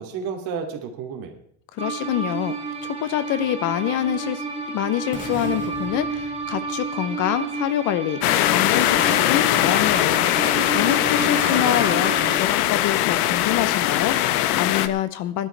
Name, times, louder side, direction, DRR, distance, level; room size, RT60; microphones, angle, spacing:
voice 1, 0.0-1.3 11.1-11.8, right 6 dB, 50° right, 4 dB, 2.6 m, -32 dB
voice 2, 1.7-2.6 2.8-10.2 10.7-15.5, left 12 dB, 40° left, 14 dB, 0.7 m, -26 dB
sound 1, 1.8-12.4, right 4 dB, 10° right, 2.5 m, -31 dB
sound 2, 5.1-7.2, left 3 dB, 15° left, 1.8 m, -39 dB
sound 3, 8.2-14.9, left 13 dB, 85° left, 1.1 m, -21 dB
19.5 x 12.0 x 3.3 m, 0.66 s
cardioid pair, 165°, 44 cm